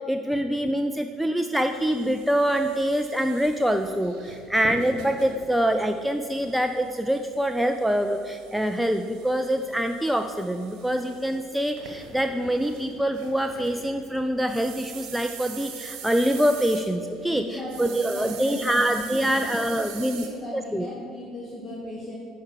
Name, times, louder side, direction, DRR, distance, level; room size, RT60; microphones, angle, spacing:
voice 1, 0.0-20.3 20.5-20.9, right 1 dB, 5° right, 6 dB, 0.4 m, -25 dB
sound 1, 1.6-17.4 17.7-20.3, right 5 dB, 55° right, 1.2 m, -43 dB
voice 2, 17.3-18.8 19.1-22.1, left 1 dB, 20° left, -5 dB, 1.5 m, -37 dB
10.0 x 4.3 x 6.4 m, 2.5 s
figure-of-eight pair, 60°, 0 cm